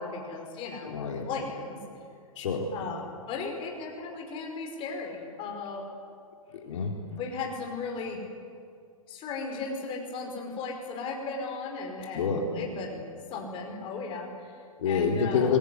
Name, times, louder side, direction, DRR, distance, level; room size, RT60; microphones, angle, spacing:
voice 1, 0.0-1.0 1.3-1.8 2.7-5.9 7.2-8.2 9.1-15.6, left 4 dB, 30° left, 2 dB, 5.3 m, -36 dB
voice 2, 0.9-1.3 2.4-2.7 6.5-7.2 12.1-12.4 14.8-15.6, left 5 dB, 60° left, 1 dB, 4.0 m, -27 dB
25.5 x 22.0 x 9.8 m, 2.4 s
hypercardioid pair, 125°, 18 cm